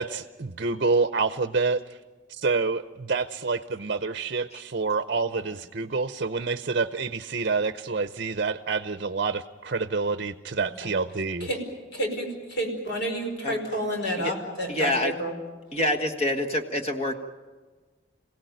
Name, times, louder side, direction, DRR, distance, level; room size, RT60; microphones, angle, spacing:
voice 1, 0.0-1.8 2.4-11.5, right 4 dB, 50° right, 11 dB, 0.7 m, -27 dB
voice 2, 10.6-10.9 11.4-11.6 11.9-15.3, right 1 dB, 60° left, 3 dB, 5.1 m, -30 dB
voice 3, 14.7-15.1 15.7-17.1, left 1 dB, 35° left, 3 dB, 1.5 m, -26 dB
27.0 x 17.0 x 9.2 m, 1.4 s
head